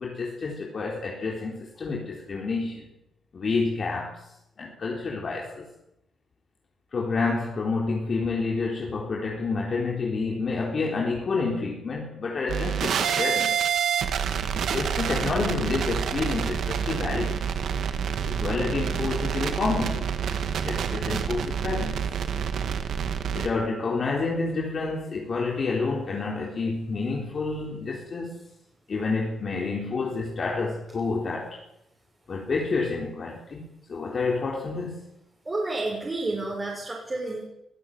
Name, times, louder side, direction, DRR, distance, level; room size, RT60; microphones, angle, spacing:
voice 1, 0.0-2.9 3.3-4.3 4.6-5.7 6.9-13.6 14.7-17.4 18.2-20.1 20.6-22.0 23.3-28.4 28.9-31.6 32.3-33.6 33.9-35.1, left 4 dB, 45° left, -1 dB, 4.0 m, -29 dB
sound 1, 12.5-23.5, right 7 dB, 75° right, 2.1 m, -27 dB
voice 2, 35.4-37.4, right 2 dB, 25° right, -3 dB, 6.9 m, -30 dB
23.0 x 13.5 x 9.2 m, 0.84 s
cardioid pair, 110°, 0 cm